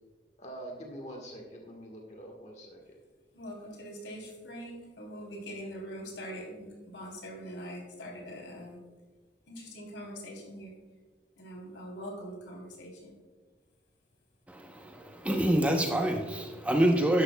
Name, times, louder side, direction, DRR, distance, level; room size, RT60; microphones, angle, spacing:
voice 1, 0.4-3.0, right 1 dB, 35° left, 1 dB, 1.4 m, -44 dB
voice 2, 3.3-8.8 9.5-10.8 11.4-13.1, equal, 80° left, 0 dB, 3.2 m, -43 dB
voice 3, 14.5-17.2, right 1 dB, 10° right, 2 dB, 0.7 m, -27 dB
12.0 x 11.0 x 2.2 m, 1.4 s
head